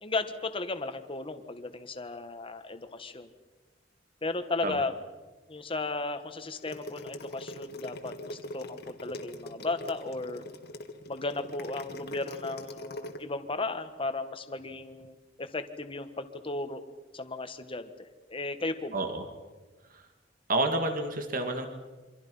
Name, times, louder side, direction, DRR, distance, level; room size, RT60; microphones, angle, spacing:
voice 1, 0.0-3.3 4.2-4.9 5.5-10.4 11.1-16.8 17.1-19.0, left 3 dB, 30° left, 9 dB, 1.5 m, -35 dB
sound 1, 6.5-13.2, left 1 dB, 60° left, 1.9 m, -41 dB
voice 2, 18.9-19.3 19.9-20.0 20.5-21.7, right 2 dB, 50° right, 6 dB, 2.4 m, -29 dB
28.0 x 24.5 x 5.6 m, 1.2 s
head